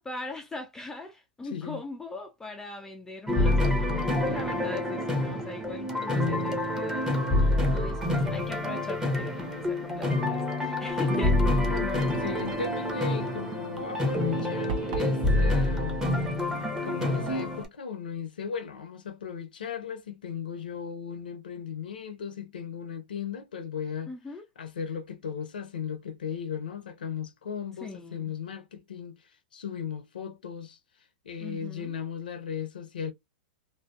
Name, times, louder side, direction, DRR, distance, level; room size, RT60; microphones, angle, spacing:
voice 1, 0.0-11.4 24.1-24.5 27.8-28.3 31.4-31.9, left 3 dB, 10° left, 0.3 m, -41 dB
voice 2, 1.4-1.8 3.8-5.4 11.7-16.0 16.7-24.1 24.6-33.1, left 7 dB, 80° left, 0.6 m, -37 dB
sound 1, 3.3-17.6, left 1 dB, 10° right, 0.8 m, -27 dB
sound 2, 14.7-15.2, right 3 dB, 60° right, 0.8 m, -33 dB
2.7 x 2.2 x 2.3 m
hypercardioid pair, 110°, 5 cm